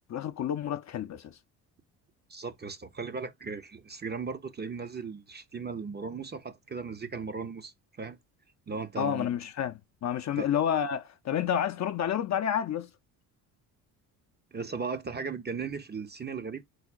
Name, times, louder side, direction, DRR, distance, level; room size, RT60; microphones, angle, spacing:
voice 1, 0.1-1.4 9.0-12.9, left 9 dB, 35° left, 0.6 m, -30 dB
voice 2, 2.3-7.7 8.0-8.2 8.7-9.3 10.4-10.5 14.5-16.6, right 5 dB, 20° right, 0.7 m, -37 dB
4.8 x 4.1 x 2.4 m
hypercardioid pair, 60°, 47 cm